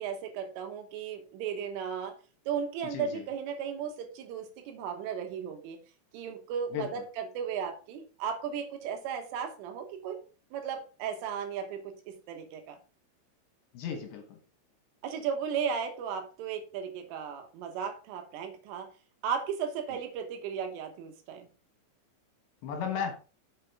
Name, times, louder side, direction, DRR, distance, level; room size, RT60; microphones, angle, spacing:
voice 1, 0.0-2.2 2.5-5.8 6.1-10.2 10.5-12.8 15.0-18.9 19.2-21.5, right 7 dB, 80° right, 5 dB, 3.7 m, -35 dB
voice 2, 2.9-3.2 6.7-6.9 13.7-14.4 22.6-23.1, left 7 dB, 70° left, 4 dB, 3.0 m, -34 dB
7.4 x 7.1 x 3.5 m, 0.35 s
omnidirectional pair, 5.9 m